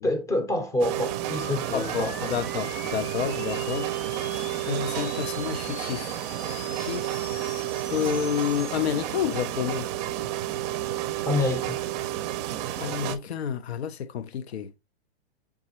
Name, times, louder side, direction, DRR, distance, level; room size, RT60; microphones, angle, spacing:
voice 1, 0.0-2.3 11.3-11.8, left 2 dB, 10° left, 0.6 m, -27 dB
sound 1, 0.8-13.2, right 13 dB, 40° right, 0.5 m, -31 dB
sound 2, 1.3-8.7, left 6 dB, 50° left, 0.9 m, -43 dB
voice 2, 1.7-3.9 4.6-6.1 6.8-7.2 7.9-9.9 12.8-14.7, left 8 dB, 80° left, 0.5 m, -29 dB
3.9 x 3.6 x 2.8 m
hypercardioid pair, 120°, 32 cm